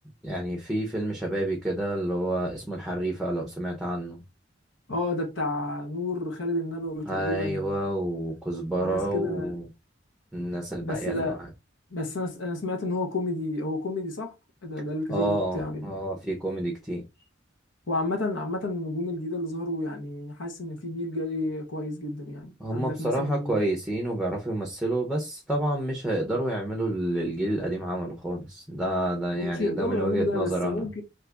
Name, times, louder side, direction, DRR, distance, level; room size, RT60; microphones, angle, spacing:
voice 1, 0.2-4.2 7.1-9.6 10.3-11.5 15.1-17.0 22.6-30.9, right 1 dB, ahead, 0.6 m, -29 dB
voice 2, 4.9-7.8 8.8-9.5 10.8-11.4 11.9-14.3 14.6-16.0 17.9-23.6 29.3-31.0, left 2 dB, 90° left, 1.0 m, -31 dB
2.8 x 2.4 x 3.3 m
head